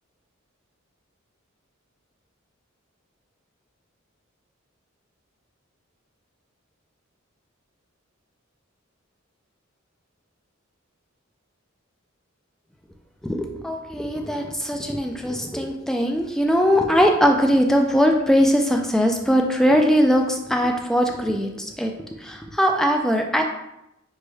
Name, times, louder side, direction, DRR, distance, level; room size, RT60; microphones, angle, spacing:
voice 1, 13.2-21.9 22.2-23.4, equal, ahead, 3 dB, 0.3 m, -20 dB
5.9 x 2.2 x 3.3 m, 0.85 s
head